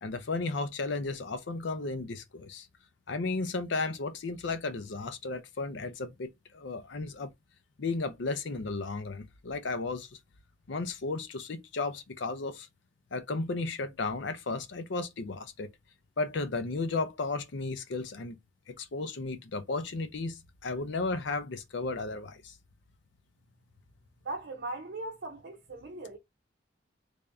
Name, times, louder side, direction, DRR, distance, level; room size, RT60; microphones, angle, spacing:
voice 1, 0.0-2.7 3.1-7.3 7.8-10.1 10.7-12.7 13.1-15.7 16.2-18.4 18.7-22.5, left 3 dB, 65° left, 0.6 m, -34 dB
voice 2, 24.2-26.2, right 2 dB, 60° right, 0.6 m, -39 dB
3.4 x 2.6 x 3.4 m
head